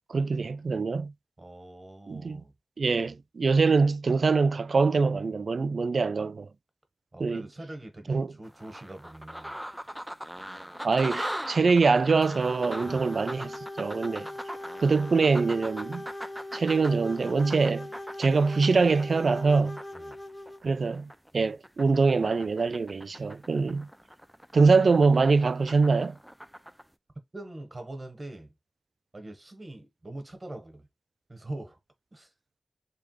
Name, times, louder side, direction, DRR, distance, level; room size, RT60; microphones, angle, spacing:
voice 1, 0.1-1.1 2.1-2.4 2.8-6.5 7.2-7.4 8.1-8.3 10.8-14.2 14.8-16.0 16.5-17.9 18.2-19.8 20.6-21.1 21.3-23.9 24.5-26.2, right 4 dB, 75° right, 0.3 m, -24 dB
voice 2, 1.4-2.5 3.0-3.2 7.1-9.6 12.7-13.0 14.1-14.4 19.9-20.2 27.3-28.5 29.1-30.9 31.3-31.8 32.1-32.3, right 1 dB, 40° right, 1.6 m, -43 dB
sound 1, 8.4-21.3 21.6-26.8, equal, 5° right, 0.5 m, -41 dB
sound 2, 12.2-20.6, left 1 dB, 20° left, 0.8 m, -41 dB
3.5 x 3.4 x 3.3 m
cardioid pair, 40°, 0 cm